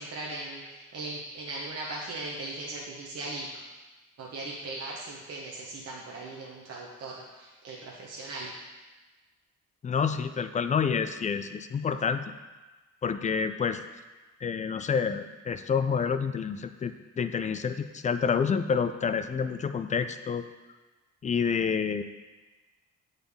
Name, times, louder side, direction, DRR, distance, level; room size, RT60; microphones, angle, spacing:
voice 1, 0.0-3.6 4.2-8.5, right 2 dB, 55° right, -4 dB, 1.0 m, -38 dB
voice 2, 9.8-12.3 13.0-13.8 14.4-20.4 21.2-22.0, left 6 dB, 25° left, 10 dB, 0.3 m, -28 dB
7.9 x 4.0 x 3.5 m, 1.2 s
cardioid pair, 90°, 30 cm